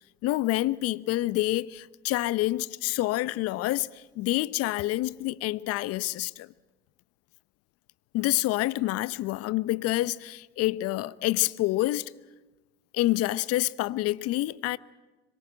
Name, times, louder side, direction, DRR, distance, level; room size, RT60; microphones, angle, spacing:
voice 1, 0.2-6.5 8.1-12.1 12.9-14.8, left 17 dB, 50° left, 0.9 m, -27 dB
25.5 x 23.0 x 7.8 m
hypercardioid pair, 85°, 30 cm